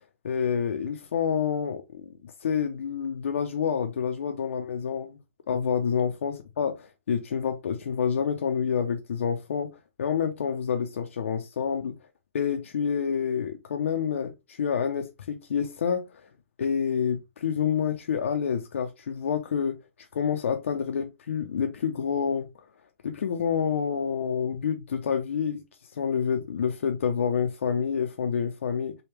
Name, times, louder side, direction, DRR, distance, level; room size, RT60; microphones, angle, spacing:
voice 1, 0.2-5.2 5.5-12.0 12.3-16.2 16.6-19.8 20.1-22.5 23.0-25.6 25.9-29.0, left 7 dB, 65° left, 0.5 m, -28 dB
3.4 x 2.2 x 3.2 m
figure-of-eight pair, 125°, 7 cm